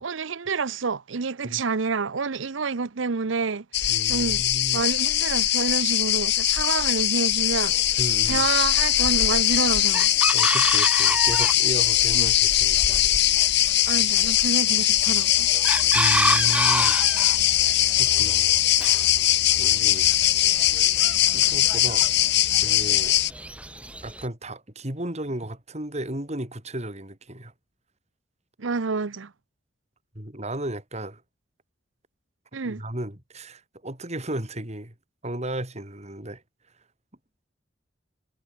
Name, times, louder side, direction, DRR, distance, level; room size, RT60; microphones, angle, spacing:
voice 1, 0.0-4.5 4.7-7.7 8.3-10.1 12.1-12.3 13.9-15.5 28.6-29.3 32.5-32.8, right 4 dB, 85° right, 0.8 m, -28 dB
sound 1, 3.7-23.3, left 13 dB, 60° left, 0.9 m, -21 dB
voice 2, 3.9-4.8 8.0-8.5 10.3-13.1 15.9-17.0 17.8-18.6 19.6-20.1 21.3-22.1 22.6-23.1 24.0-27.5 30.1-31.2 32.6-34.9 35.2-36.4, right 1 dB, 35° right, 4.9 m, -34 dB
Chicken rooster, 7.7-24.3, right 1 dB, 5° right, 1.5 m, -32 dB
head